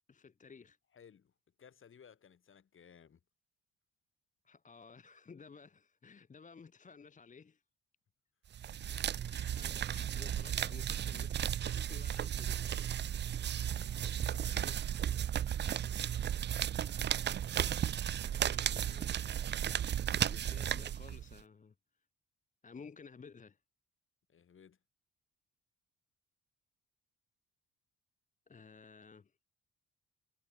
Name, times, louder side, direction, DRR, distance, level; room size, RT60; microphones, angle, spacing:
voice 1, 0.1-0.8 4.4-7.6 9.3-12.6 18.4-19.6 20.2-21.7 22.6-23.6 28.5-29.3, left 5 dB, 25° left, 0.8 m, -55 dB
voice 2, 0.9-3.2 8.9-9.2 14.2-15.0 24.3-24.8, left 7 dB, 45° left, 1.6 m, -60 dB
sound 1, 8.5-21.4, right 10 dB, 35° right, 0.4 m, -35 dB
cardioid pair, 90°, 30 cm